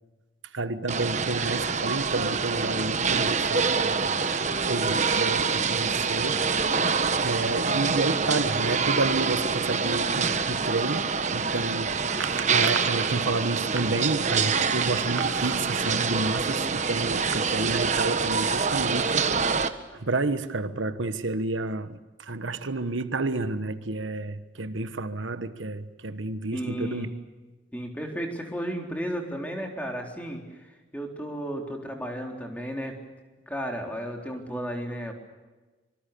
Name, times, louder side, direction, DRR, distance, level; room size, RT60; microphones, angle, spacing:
voice 1, 0.5-3.9 4.6-6.4 6.8-6.9 7.2-19.2 19.9-27.1, right 2 dB, 80° right, 1.3 m, -30 dB
sound 1, 0.9-19.7, right 5 dB, 35° right, 1.3 m, -26 dB
voice 2, 26.5-27.1 27.7-33.0 33.5-35.1, equal, 10° left, 4.0 m, -33 dB
25.5 x 25.0 x 6.9 m
head